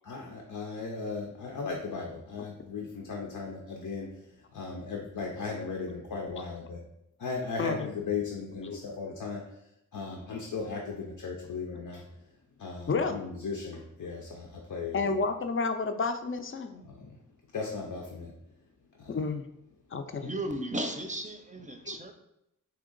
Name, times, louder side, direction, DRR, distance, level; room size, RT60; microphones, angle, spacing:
voice 1, 0.0-4.1 4.5-6.8 7.2-9.4 9.9-12.0 12.6-15.3 16.8-17.2 17.5-18.3 19.0-19.1, left 4 dB, 90° left, 0 dB, 0.6 m, -37 dB
voice 2, 7.6-7.9 8.6-8.8 10.1-10.2 12.9-13.2 14.9-16.8 19.1-19.5 19.9-20.3, left 4 dB, 40° left, 8 dB, 0.4 m, -30 dB
voice 3, 20.2-22.1, right 1 dB, 25° right, 5 dB, 0.5 m, -35 dB
3.6 x 2.8 x 3.8 m, 0.80 s
wide cardioid pair, 60°, 32 cm